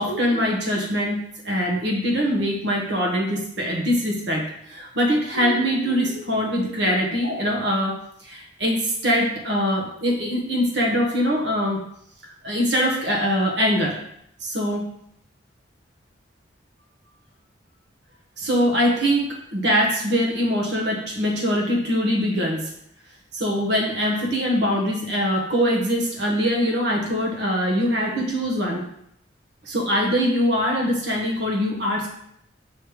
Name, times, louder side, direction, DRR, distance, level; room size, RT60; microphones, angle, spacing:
voice 1, 0.0-8.0 8.2-11.8 12.2-14.0 14.4-14.9 18.4-22.7 23.3-28.8 29.6-32.1, equal, 60° right, -1 dB, 1.3 m, -23 dB
7.7 x 3.2 x 4.8 m, 0.72 s
head